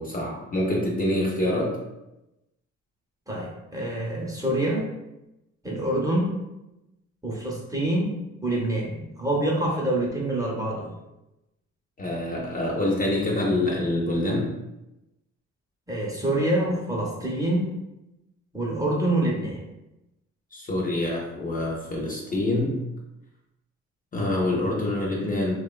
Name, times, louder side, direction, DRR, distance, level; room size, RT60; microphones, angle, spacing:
voice 1, 0.0-1.8 12.0-14.5 20.5-22.8 24.1-25.5, left 1 dB, 30° left, -3 dB, 0.5 m, -26 dB
voice 2, 3.3-4.8 5.6-6.4 7.2-10.9 15.9-17.8 18.5-19.6, right 1 dB, 10° right, -3 dB, 0.6 m, -26 dB
2.8 x 2.1 x 2.2 m, 0.94 s
cardioid pair, 90°, 30 cm